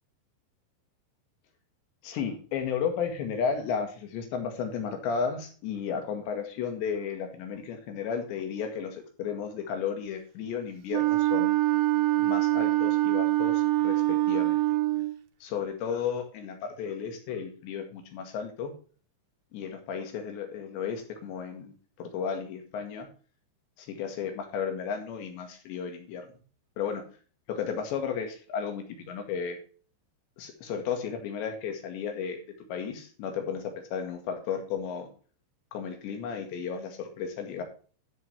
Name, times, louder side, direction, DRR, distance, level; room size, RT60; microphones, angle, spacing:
voice 1, 2.0-11.5 12.2-14.6 15.4-18.7 19.5-23.1 23.8-26.3 26.8-27.0 27.5-29.6 30.4-32.4 32.7-35.1 35.7-37.6, left 6 dB, 75° left, 5 dB, 4.2 m, -33 dB
Wind instrument woodwind instrument, 10.9-15.1, right 17 dB, 80° right, 3.2 m, -24 dB
13.0 x 8.0 x 4.3 m, 0.40 s
omnidirectional pair, 5.2 m